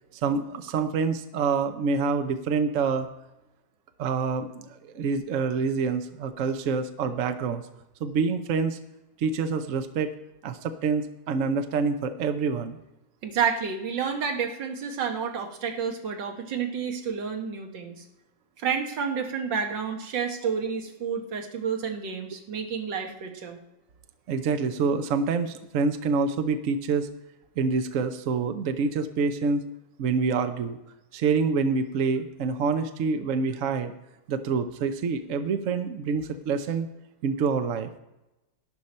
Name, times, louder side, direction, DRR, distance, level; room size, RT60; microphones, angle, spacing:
voice 1, 0.2-3.1 4.0-7.6 8.0-8.8 9.2-10.1 10.4-12.8 24.3-27.1 27.6-29.6 30.0-30.8 31.1-33.9 34.3-36.9 37.2-37.9, right 5 dB, 60° right, 8 dB, 0.8 m, -26 dB
voice 2, 13.2-18.0 18.6-23.6, right 6 dB, 80° right, 4 dB, 1.9 m, -30 dB
12.0 x 10.5 x 4.3 m, 0.96 s
omnidirectional pair, 2.0 m